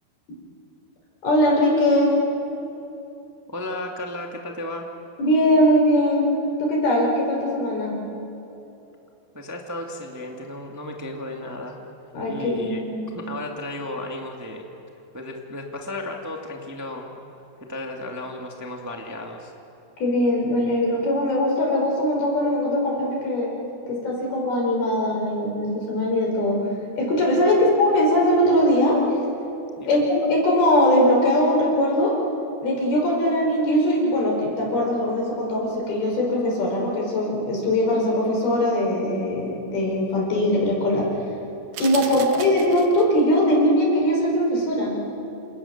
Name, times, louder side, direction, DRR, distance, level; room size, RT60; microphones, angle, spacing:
voice 1, 1.2-2.2 5.2-6.3 6.6-8.0 12.1-13.0 20.0-23.5 23.9-26.7 27.0-29.2 29.9-32.2 32.6-41.3 41.8-45.0, left 1 dB, 80° left, -1 dB, 7.4 m, -21 dB
voice 2, 3.5-4.9 9.3-11.8 12.2-12.8 13.1-14.6 15.1-17.1 17.7-19.5 27.5-27.6 29.8-30.0 42.0-42.2, left 1 dB, 5° right, 1 dB, 1.3 m, -34 dB
sound 1, 41.7-43.2, right 8 dB, 65° right, 2.9 m, -36 dB
28.0 x 28.0 x 7.3 m, 2.9 s
omnidirectional pair, 4.3 m